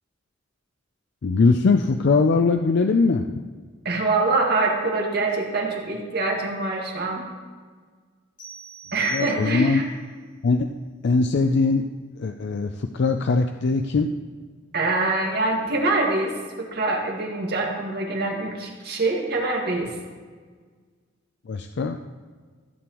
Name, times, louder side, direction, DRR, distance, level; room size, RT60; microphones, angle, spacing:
voice 1, 1.2-3.4 9.1-9.8 10.4-10.7 11.0-11.9 12.2-14.1 21.5-22.0, left 4 dB, 60° left, 6 dB, 0.4 m, -21 dB
voice 2, 3.9-7.3 8.9-9.8 14.7-19.9, right 2 dB, 55° right, -1 dB, 1.8 m, -24 dB
sound 1, 8.4-9.9, right 4 dB, 45° left, 2.0 m, -42 dB
15.0 x 7.7 x 3.0 m, 1.5 s
head